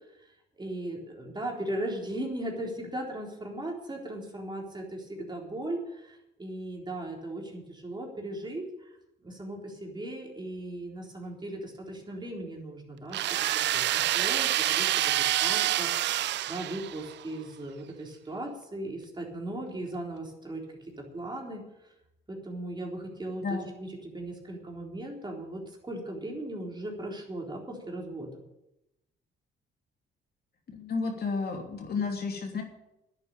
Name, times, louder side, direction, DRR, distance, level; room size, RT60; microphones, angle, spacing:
voice 1, 0.2-9.0 9.2-21.9 22.3-28.3, right 1 dB, 20° right, 0 dB, 4.0 m, -38 dB
sound 1, 13.1-17.2, right 13 dB, 65° right, 0.4 m, -27 dB
voice 2, 30.7-32.6, left 4 dB, 55° left, 2 dB, 3.0 m, -32 dB
11.0 x 9.7 x 8.8 m, 0.89 s
cardioid pair, 90°, 20 cm